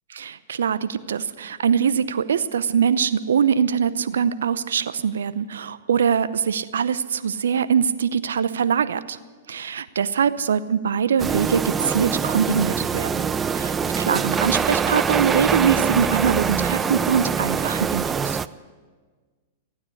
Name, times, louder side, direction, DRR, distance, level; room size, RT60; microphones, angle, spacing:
voice 1, 0.2-9.2 9.5-18.4, right 7 dB, 80° right, 14 dB, 0.7 m, -23 dB
sound 1, 11.2-18.5, right 6 dB, 20° right, 0.5 m, -24 dB
15.5 x 9.5 x 9.7 m, 1.4 s
hypercardioid pair, 115°, 0 cm